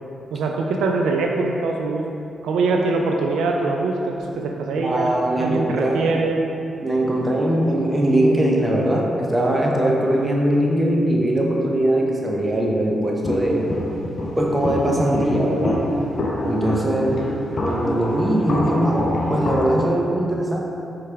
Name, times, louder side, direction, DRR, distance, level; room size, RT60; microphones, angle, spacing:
voice 1, 0.3-2.0 2.4-5.1 5.4-6.5, right 3 dB, 90° right, 1 dB, 0.3 m, -23 dB
voice 2, 4.8-6.2 6.8-13.7 14.4-15.8 16.4-17.2 17.6-20.6, right 1 dB, 20° right, -2 dB, 0.7 m, -21 dB
Walk footsteps, 13.2-19.9, left 1 dB, 55° left, 0.6 m, -26 dB
4.6 x 3.3 x 3.3 m, 2.6 s
cardioid pair, 70°, 0 cm